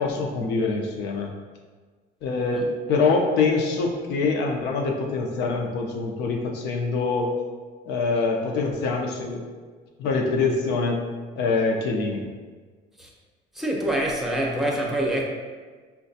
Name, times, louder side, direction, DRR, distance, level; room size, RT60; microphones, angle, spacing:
voice 1, 0.0-1.3 2.2-7.3 7.9-9.4 10.0-11.0 11.4-12.2, left 4 dB, 80° left, 2 dB, 0.6 m, -24 dB
voice 2, 13.5-15.2, right 1 dB, ahead, -1 dB, 0.7 m, -25 dB
5.6 x 2.3 x 2.7 m, 1.4 s
cardioid pair, 110°, 17 cm